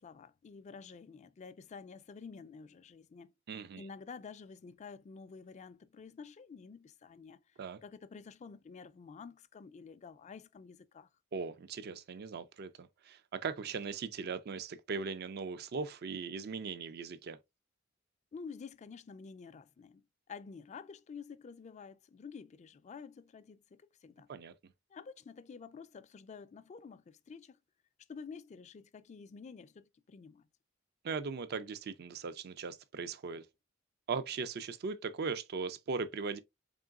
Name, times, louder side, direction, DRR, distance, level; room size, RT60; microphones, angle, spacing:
voice 1, 0.0-3.3 3.8-11.1 18.3-24.3 24.9-27.6 28.1-30.5, left 5 dB, 35° left, 0.3 m, -50 dB
voice 2, 3.5-3.8 7.6-7.8 11.3-17.4 24.3-24.5 31.0-33.5 34.1-36.4, right 5 dB, 55° right, 0.4 m, -39 dB
3.8 x 3.6 x 2.3 m
head